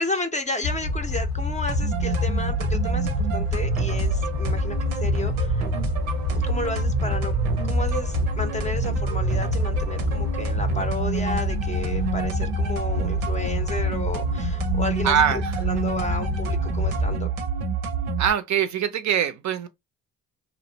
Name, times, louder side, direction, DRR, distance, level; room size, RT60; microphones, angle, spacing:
voice 1, 0.0-4.8 5.0-5.5 6.3-7.3 7.6-17.3, left 2 dB, 20° left, 0.5 m, -32 dB
sound 1, 0.6-17.2, left 4 dB, 80° left, 0.9 m, -28 dB
sound 2, 1.7-18.3, right 6 dB, 90° right, 0.6 m, -28 dB
voice 2, 15.0-15.6 18.2-19.7, right 9 dB, 45° right, 0.4 m, -23 dB
2.5 x 2.0 x 2.6 m
hypercardioid pair, 55°, 40 cm